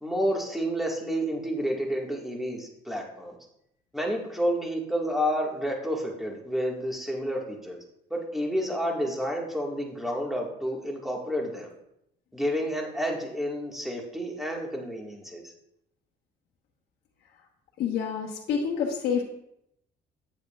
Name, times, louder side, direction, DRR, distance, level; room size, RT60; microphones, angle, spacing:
voice 1, 0.0-3.4 3.9-7.8 8.1-11.7 12.3-15.5, equal, ahead, -1 dB, 1.8 m, -30 dB
voice 2, 17.8-19.2, left 7 dB, 70° left, -3 dB, 1.3 m, -28 dB
8.8 x 8.3 x 2.4 m, 0.78 s
cardioid pair, 110°, 17 cm